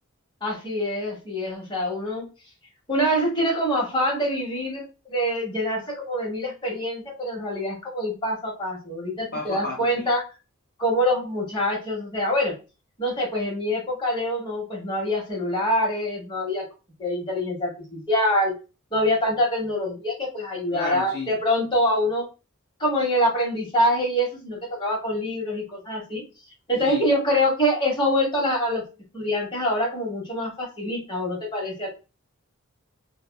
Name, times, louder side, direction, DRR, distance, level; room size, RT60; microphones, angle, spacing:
voice 1, 0.4-2.3 2.9-10.2 10.8-12.5 13.0-16.6 17.0-18.5 18.9-22.2 22.8-26.2 26.7-28.8 29.1-31.9, equal, 20° left, 1.2 m, -25 dB
voice 2, 9.3-10.1 20.7-21.3 26.8-27.0, left 2 dB, 45° left, 0.7 m, -32 dB
3.4 x 2.2 x 2.2 m
head